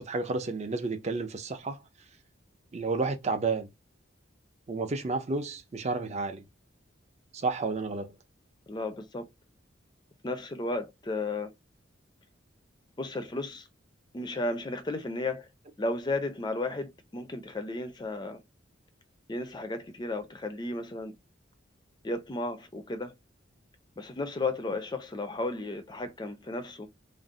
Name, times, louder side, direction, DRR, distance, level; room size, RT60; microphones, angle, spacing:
voice 1, 0.0-1.8 2.7-3.7 4.7-6.4 7.4-8.1, right 3 dB, 35° right, 0.5 m, -31 dB
voice 2, 8.7-9.2 10.2-11.5 13.0-13.7 14.1-15.5 15.8-18.4 19.3-21.1 22.0-23.1 24.0-26.9, left 2 dB, 25° left, 0.4 m, -34 dB
2.5 x 2.0 x 3.7 m
head